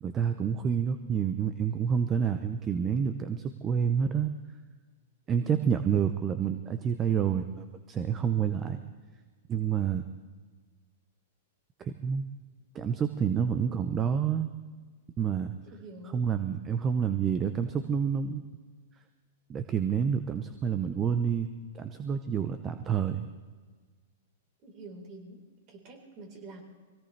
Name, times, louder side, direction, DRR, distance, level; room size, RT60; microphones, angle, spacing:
voice 1, 0.0-4.3 5.3-8.8 9.5-10.0 11.8-12.2 12.7-14.5 15.2-15.5 16.1-18.4 19.5-23.3, right 7 dB, 25° right, 9 dB, 0.8 m, -28 dB
voice 2, 5.4-5.7 13.7-13.9 15.7-16.4 24.6-26.6, right 2 dB, 45° right, 1 dB, 4.4 m, -47 dB
23.0 x 17.0 x 3.4 m, 1.5 s
hypercardioid pair, 120°, 0 cm